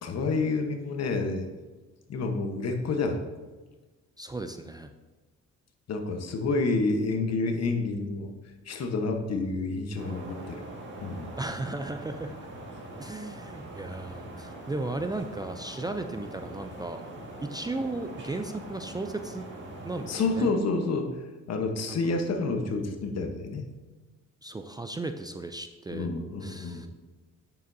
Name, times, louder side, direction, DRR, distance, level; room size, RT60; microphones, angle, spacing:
voice 1, 0.0-1.5 2.1-3.2 5.9-8.3 8.6-10.6 11.0-11.3 20.1-23.7 25.9-26.9, left 3 dB, 55° left, 5 dB, 1.1 m, -29 dB
voice 2, 4.2-4.9 11.4-12.3 13.0-17.0 17.4-19.4 19.8-20.5 21.9-22.2 24.4-26.1 26.4-26.9, right 2 dB, 15° right, 6 dB, 0.4 m, -35 dB
sound 1, 10.0-20.5, right 1 dB, 40° right, 1.9 m, -42 dB
9.2 x 6.9 x 2.7 m, 1.3 s
cardioid pair, 90°, 30 cm